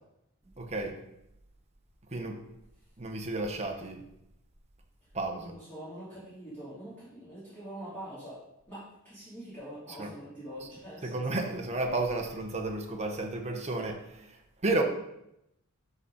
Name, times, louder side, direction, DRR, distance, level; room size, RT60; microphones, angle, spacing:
voice 1, 0.6-1.0 2.1-2.4 3.0-4.0 5.1-5.5 10.0-10.1 11.0-14.8, right 2 dB, 30° right, 3 dB, 1.1 m, -32 dB
voice 2, 5.3-8.4 8.7-11.2, right 1 dB, 10° left, -13 dB, 3.6 m, -44 dB
12.0 x 4.1 x 4.3 m, 0.82 s
head